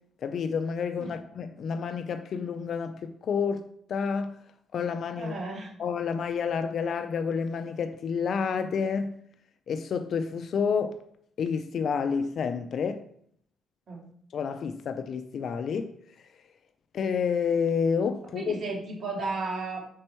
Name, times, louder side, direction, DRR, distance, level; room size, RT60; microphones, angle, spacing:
voice 1, 0.2-3.6 3.9-4.4 4.7-5.3 5.8-9.2 9.7-11.0 11.4-13.0 14.3-15.9 16.9-18.6, left 6 dB, 60° left, 0.4 m, -29 dB
voice 2, 5.2-5.7 13.9-14.0 18.3-19.9, right 3 dB, 55° right, 2.1 m, -34 dB
5.3 x 4.4 x 4.4 m
cardioid pair, 90°, 0 cm